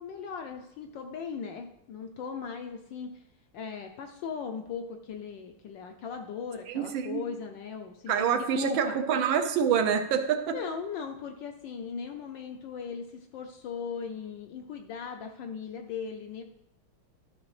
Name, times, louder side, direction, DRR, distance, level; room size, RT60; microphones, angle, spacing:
voice 1, 0.0-3.2 3.5-9.0 10.5-16.4, left 6 dB, 75° left, 4 dB, 1.1 m, -38 dB
voice 2, 6.7-7.2 8.1-10.5, right 7 dB, 75° right, 7 dB, 1.3 m, -26 dB
12.5 x 5.8 x 3.2 m, 0.81 s
omnidirectional pair, 2.4 m